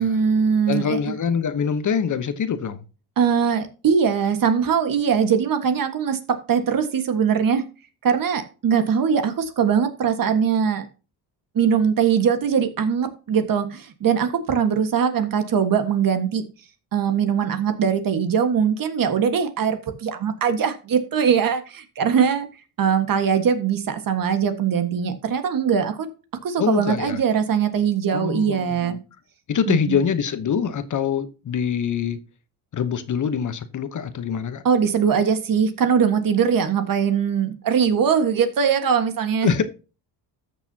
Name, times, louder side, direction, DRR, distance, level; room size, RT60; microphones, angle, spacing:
voice 1, 0.0-1.1 3.2-7.6 8.0-10.9 11.5-16.4 16.9-22.5 22.8-26.1 26.4-29.0 29.7-30.0 34.6-39.5, right 7 dB, 50° right, 1.6 m, -21 dB
voice 2, 0.7-2.8 26.6-27.2 28.1-29.0 29.5-32.2 32.7-34.6 39.4-39.6, left 7 dB, 45° left, 1.0 m, -24 dB
13.5 x 6.7 x 2.8 m
cardioid pair, 110°, 42 cm